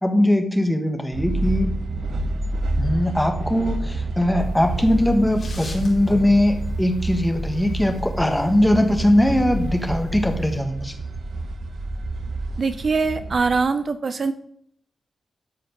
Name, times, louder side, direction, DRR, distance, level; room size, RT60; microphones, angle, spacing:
voice 1, 0.0-1.8 2.8-10.9, left 1 dB, 5° left, 6 dB, 1.4 m, -20 dB
sound 1, 1.1-13.6, right 2 dB, 90° right, 1.3 m, -29 dB
sound 2, 4.4-10.6, left 2 dB, 50° left, 4.6 m, -35 dB
voice 2, 12.6-14.3, right 4 dB, 45° right, 11 dB, 0.6 m, -22 dB
12.5 x 4.9 x 6.7 m, 0.67 s
wide cardioid pair, 170°, 0 cm